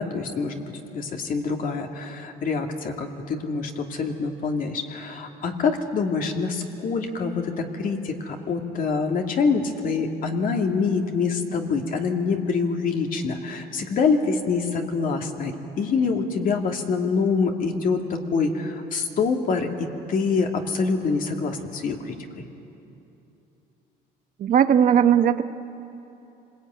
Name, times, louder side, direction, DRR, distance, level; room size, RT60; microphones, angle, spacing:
voice 1, 0.0-22.5, left 4 dB, 55° left, 3 dB, 2.4 m, -25 dB
voice 2, 24.4-25.4, right 9 dB, 55° right, 8 dB, 1.1 m, -18 dB
26.0 x 20.5 x 9.3 m, 2.9 s
cardioid pair, 110°, 17 cm